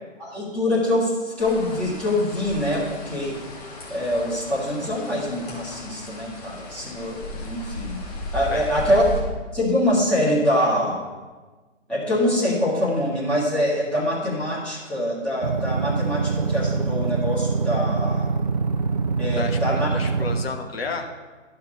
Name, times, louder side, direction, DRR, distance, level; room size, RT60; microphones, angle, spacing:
voice 1, 0.2-3.4 3.9-8.0 8.3-9.0 9.5-11.0 11.9-18.3 19.2-19.9, left 1 dB, 5° left, -9 dB, 1.7 m, -24 dB
rain on london, 1.4-9.2, left 1 dB, 30° left, 2.5 m, -36 dB
sound 1, 15.4-20.4, right 4 dB, 35° right, 0.6 m, -24 dB
voice 2, 19.3-21.1, left 4 dB, 50° left, 4 dB, 1.4 m, -32 dB
12.0 x 5.8 x 5.3 m, 1.3 s
figure-of-eight pair, 145°, 39 cm